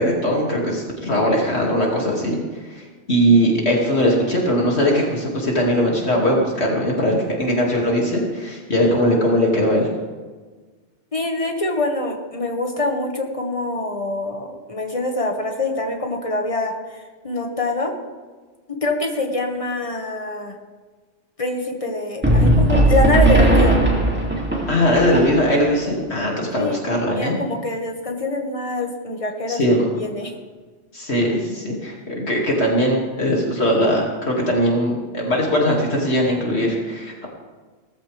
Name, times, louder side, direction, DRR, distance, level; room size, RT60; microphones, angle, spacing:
voice 1, 0.0-9.9 24.7-27.4 29.5-29.9 30.9-37.3, equal, 65° left, -2 dB, 2.8 m, -20 dB
voice 2, 11.1-17.9 18.7-20.5 21.4-23.8 26.6-26.8 27.2-29.6 30.0-30.3, left 2 dB, 30° left, 2 dB, 1.9 m, -25 dB
sound 1, 22.2-25.8, right 1 dB, 10° right, 2.7 m, -17 dB
18.0 x 14.5 x 3.5 m, 1.4 s
omnidirectional pair, 1.2 m